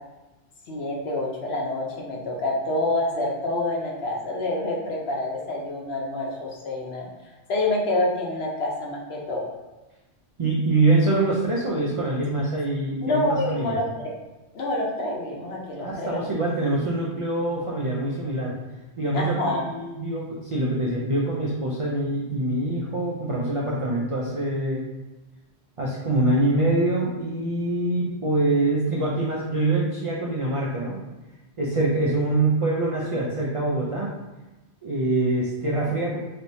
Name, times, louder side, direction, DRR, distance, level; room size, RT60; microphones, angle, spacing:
voice 1, 0.7-7.1 7.5-9.5 13.0-14.1 14.5-16.2 19.1-19.6, left 2 dB, 65° left, -2 dB, 0.9 m, -27 dB
voice 2, 10.4-13.8 15.8-18.5 19.0-24.9 25.8-31.0 31.6-34.1 34.8-36.2, right 2 dB, 55° right, -4 dB, 0.3 m, -24 dB
3.3 x 2.9 x 2.7 m, 1.1 s
omnidirectional pair, 1.2 m